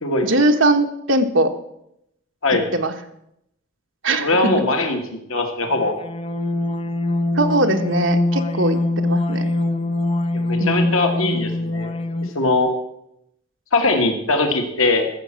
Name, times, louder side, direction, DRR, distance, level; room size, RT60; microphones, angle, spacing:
voice 1, 0.2-1.5 2.7-2.9 4.0-4.5 7.3-9.5 10.6-10.9, right 2 dB, 70° right, 6 dB, 1.3 m, -20 dB
voice 2, 4.2-6.0 10.3-11.9 12.4-12.7 13.7-15.1, left 2 dB, 85° left, 4 dB, 1.7 m, -20 dB
sound 1, 5.6-12.5, left 2 dB, 25° left, 0.6 m, -23 dB
14.0 x 7.1 x 7.6 m, 0.78 s
head